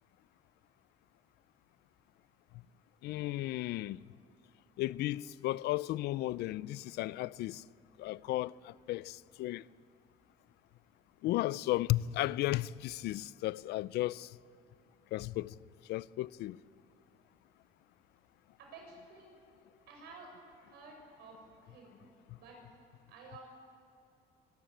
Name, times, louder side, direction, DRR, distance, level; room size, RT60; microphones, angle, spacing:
voice 1, 3.0-4.0 4.8-7.6 8.0-9.6 11.2-14.4 15.1-15.5 15.8-16.6, left 16 dB, 80° left, 0.5 m, -34 dB
voice 2, 18.6-19.4 19.9-20.3 20.7-22.0 22.4-22.8 23.1-23.4, right 3 dB, 80° right, 6.9 m, -52 dB
24.5 x 14.0 x 9.1 m
cardioid pair, 110°, 17 cm